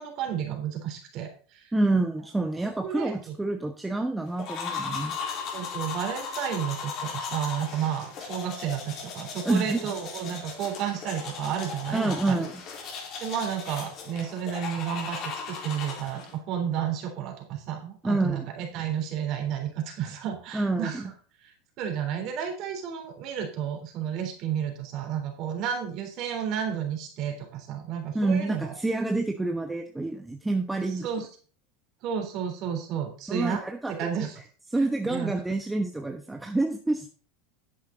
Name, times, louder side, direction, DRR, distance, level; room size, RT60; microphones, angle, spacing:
voice 1, 0.0-1.7 2.8-3.4 5.5-12.5 13.2-21.1 21.4-28.8 30.8-31.3 32.0-33.6 33.9-34.4 35.0-35.3, right 8 dB, 50° right, 4 dB, 3.6 m, -32 dB
voice 2, 1.7-5.1 9.4-9.8 11.9-12.6 18.0-18.4 20.5-21.0 28.1-31.1 33.3-34.3 34.7-37.1, right 2 dB, 10° right, 4 dB, 1.0 m, -27 dB
sound 1, 4.4-16.3, left 5 dB, 50° left, 4.2 m, -37 dB
10.0 x 8.3 x 3.9 m, 0.40 s
hypercardioid pair, 105°, 0 cm